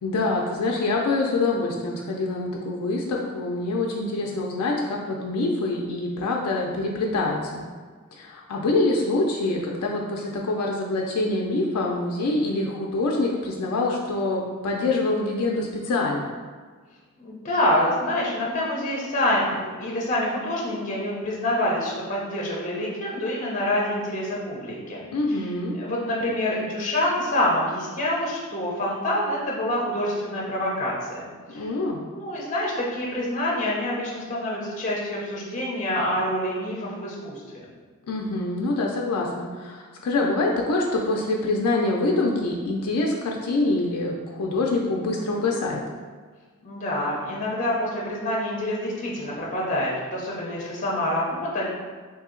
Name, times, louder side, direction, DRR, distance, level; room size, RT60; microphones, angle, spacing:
voice 1, 0.0-7.6 8.1-16.3 25.1-25.7 31.5-32.0 38.1-45.8, left 2 dB, 90° left, -1 dB, 0.4 m, -25 dB
voice 2, 17.2-25.5 25.8-31.7 32.1-37.7 46.6-51.7, left 1 dB, 35° left, -4 dB, 0.6 m, -27 dB
2.7 x 2.7 x 3.7 m, 1.5 s
head